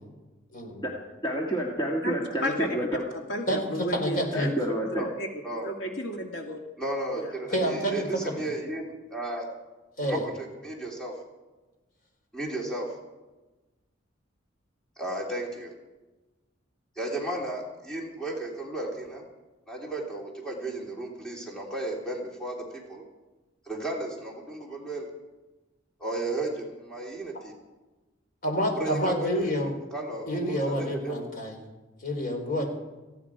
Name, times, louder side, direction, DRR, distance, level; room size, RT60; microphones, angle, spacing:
voice 1, 0.5-0.8 3.5-4.5 7.5-8.4 10.0-10.2 28.4-29.7 30.3-31.5 32.0-32.7, equal, 45° left, 3 dB, 4.0 m, -28 dB
voice 2, 1.2-3.0 4.3-5.1, right 1 dB, 25° left, -1 dB, 1.7 m, -29 dB
voice 3, 3.1-4.5 5.2-6.6 7.1-7.3, left 1 dB, 85° left, 2 dB, 2.3 m, -33 dB
voice 4, 4.6-5.1 5.4-5.7 6.8-9.5 10.0-11.1 12.3-12.9 15.0-15.7 17.0-19.2 19.7-23.0 23.7-25.1 26.0-27.5 28.7-31.2, right 1 dB, 5° left, -2 dB, 3.1 m, -34 dB
18.5 x 15.5 x 4.9 m, 1.1 s
head